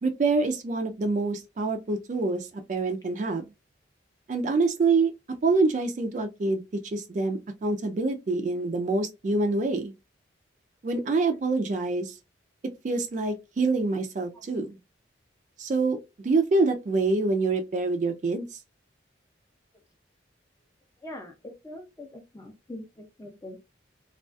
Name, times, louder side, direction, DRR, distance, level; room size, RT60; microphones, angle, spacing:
voice 1, 0.0-3.5 4.3-5.1 5.4-9.9 10.8-12.2 12.8-14.7 15.6-18.6, right 3 dB, 40° right, 0.3 m, -26 dB
voice 2, 21.0-23.6, left 1 dB, 15° left, 0.5 m, -43 dB
2.3 x 2.3 x 2.4 m
head